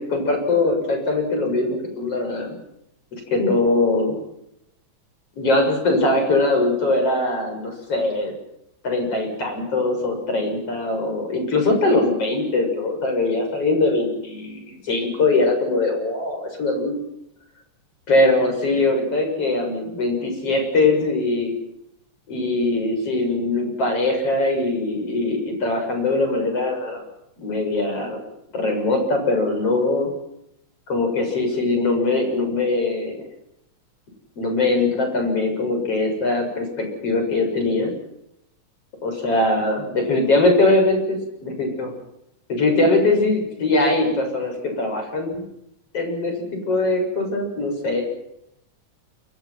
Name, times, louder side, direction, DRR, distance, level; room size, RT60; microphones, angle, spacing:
voice 1, 0.0-2.6 3.3-4.2 5.4-8.3 8.8-16.9 18.1-21.5 22.3-27.0 27.4-28.2 28.5-30.1 30.9-33.2 34.4-37.9 39.0-41.9 42.5-45.4 45.9-48.0, left 2 dB, 50° left, 4 dB, 7.9 m, -21 dB
28.5 x 24.5 x 6.0 m, 0.80 s
omnidirectional pair, 3.3 m